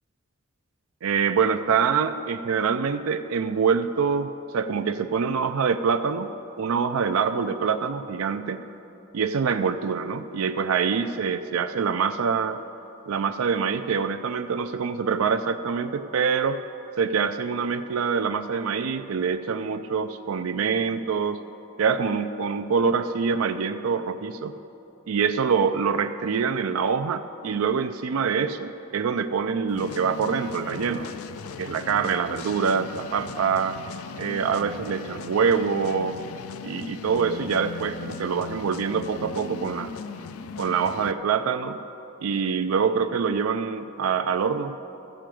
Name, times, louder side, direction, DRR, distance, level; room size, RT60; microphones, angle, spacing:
voice 1, 1.0-6.3 6.6-8.6 9.1-12.6 13.1-16.6 17.0-21.4 21.8-24.6 25.1-31.1 31.6-33.8 34.2-36.2 36.6-39.9 40.6-41.8 42.2-44.8, right 6 dB, 80° right, 8 dB, 0.4 m, -25 dB
sound 1, 29.7-41.1, left 6 dB, 85° left, 0.4 m, -38 dB
14.0 x 5.1 x 7.6 m, 2.9 s
head